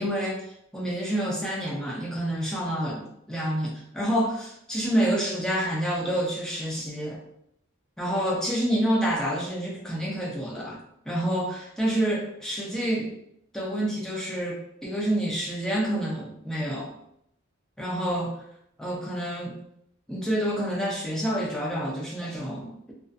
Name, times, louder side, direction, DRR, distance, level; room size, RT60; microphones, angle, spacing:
voice 1, 0.0-7.2 8.0-10.8 11.1-13.1 13.5-16.9 17.8-18.4 18.8-19.6 20.1-22.9, right 1 dB, 5° left, -4 dB, 0.4 m, -28 dB
2.4 x 2.3 x 2.4 m, 0.75 s
head